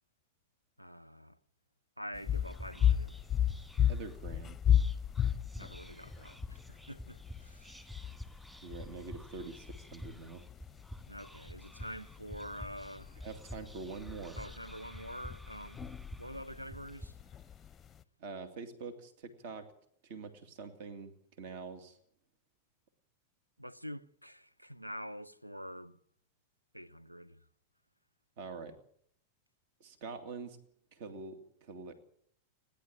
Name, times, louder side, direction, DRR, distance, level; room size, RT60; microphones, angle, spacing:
voice 1, 0.8-1.4 2.0-3.2 5.6-7.8 11.1-13.2 14.4-15.8 16.2-17.1 23.6-26.0 26.7-27.4, equal, 90° right, 0.8 m, -46 dB
sound 1, 2.1-18.0, left 10 dB, 20° left, 0.8 m, -35 dB
Whispering, 2.4-17.1, equal, 10° right, 2.0 m, -49 dB
voice 2, 3.9-4.6 8.6-10.4 13.2-14.4 18.2-19.7 20.0-22.0 28.4-28.8 29.8-30.6 30.9-31.9, right 4 dB, 50° right, 2.3 m, -45 dB
29.5 x 11.0 x 8.7 m
figure-of-eight pair, 90°, 0 cm